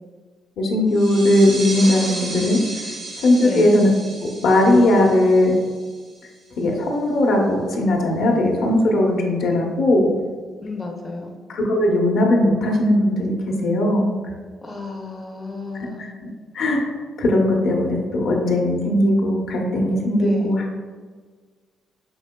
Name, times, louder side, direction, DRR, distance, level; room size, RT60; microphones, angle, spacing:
voice 1, 0.6-2.9 3.2-3.9 4.4-5.5 6.6-10.1 11.5-13.3 13.6-14.1 16.5-16.9 17.2-20.6, left 1 dB, 70° left, 0 dB, 0.8 m, -18 dB
sound 1, 0.9-6.2, right 2 dB, 75° right, 1.4 m, -33 dB
voice 2, 3.4-3.8 10.6-11.3 14.6-16.0 20.2-20.5, left 3 dB, 20° left, 1 dB, 0.5 m, -32 dB
5.4 x 2.8 x 2.2 m, 1.5 s
cardioid pair, 90°, 0 cm